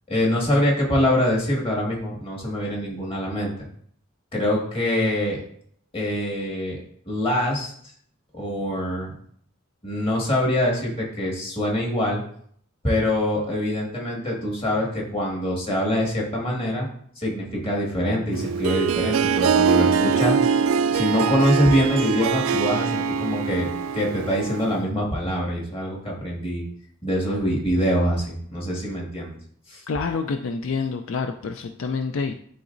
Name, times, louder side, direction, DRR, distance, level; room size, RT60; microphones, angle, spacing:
voice 1, 0.1-3.5 4.3-5.4 5.9-6.8 7.1-7.7 8.3-9.1 9.8-12.2 12.8-16.9 17.2-20.4 20.9-23.7 23.9-26.6 27.0-29.4 29.7-29.8, equal, 25° left, -2 dB, 1.8 m, -24 dB
Harp, 18.3-24.8, right 6 dB, 85° right, 0.3 m, -23 dB
voice 2, 29.9-32.4, left 4 dB, 70° left, 6 dB, 0.4 m, -27 dB
11.5 x 3.9 x 2.6 m, 0.62 s
head